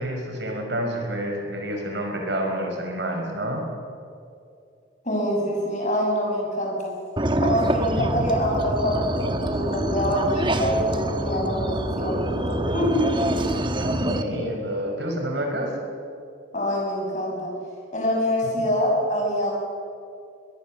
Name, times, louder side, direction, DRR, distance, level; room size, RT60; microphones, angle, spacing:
voice 1, 0.0-3.6 8.0-8.1 13.8-15.7, right 1 dB, 65° right, 2 dB, 5.2 m, -28 dB
voice 2, 5.0-6.9 7.4-13.5 16.5-17.5 17.9-19.5, equal, 40° left, -1 dB, 6.9 m, -25 dB
sound 1, 7.2-14.2, right 1 dB, 25° right, 1.1 m, -26 dB
22.0 x 20.0 x 7.4 m, 2.4 s
head